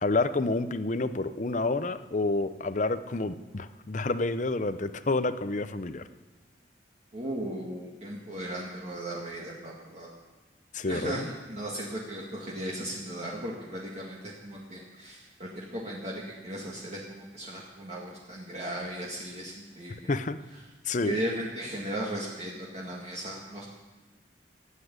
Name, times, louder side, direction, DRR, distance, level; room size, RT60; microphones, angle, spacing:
voice 1, 0.0-6.0 10.7-11.3 20.1-20.4 20.8-21.2, left 2 dB, 40° left, 12 dB, 0.7 m, -29 dB
voice 2, 7.1-10.1 10.9-20.1 21.0-23.7, right 1 dB, 35° right, -4 dB, 2.0 m, -36 dB
15.0 x 8.5 x 9.5 m, 1.2 s
head